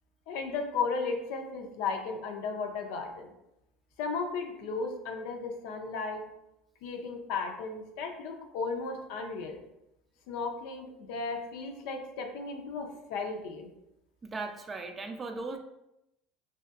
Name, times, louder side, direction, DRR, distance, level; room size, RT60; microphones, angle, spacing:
voice 1, 0.3-3.3 4.0-6.2 6.8-9.6 10.3-13.7, left 4 dB, 70° left, 4 dB, 0.5 m, -35 dB
voice 2, 14.2-15.6, right 3 dB, 25° right, 5 dB, 0.4 m, -37 dB
3.2 x 2.8 x 2.3 m, 0.85 s
hypercardioid pair, 85°, 0 cm